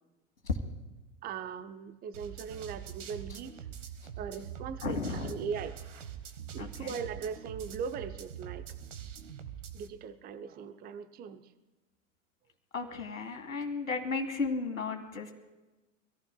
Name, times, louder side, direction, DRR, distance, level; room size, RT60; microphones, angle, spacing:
voice 1, 1.2-3.7 4.2-5.8 6.5-8.7 9.7-11.5, right 6 dB, 25° right, 10 dB, 0.7 m, -39 dB
sound 1, 2.1-9.9, right 9 dB, 70° right, 1.3 m, -44 dB
voice 2, 4.8-5.5 6.6-6.9 12.7-15.3, left 4 dB, 85° left, 4 dB, 2.2 m, -34 dB
25.0 x 14.5 x 2.3 m, 1.1 s
figure-of-eight pair, 95°, 39 cm